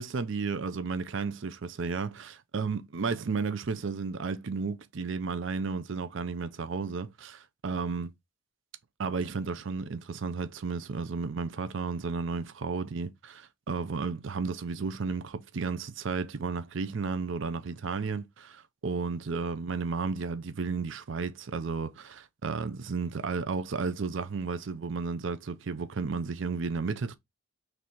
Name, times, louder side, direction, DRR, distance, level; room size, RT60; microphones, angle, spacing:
voice 1, 0.0-8.1 9.0-27.2, right 4 dB, 65° right, 0.5 m, -33 dB
3.9 x 3.3 x 3.0 m
head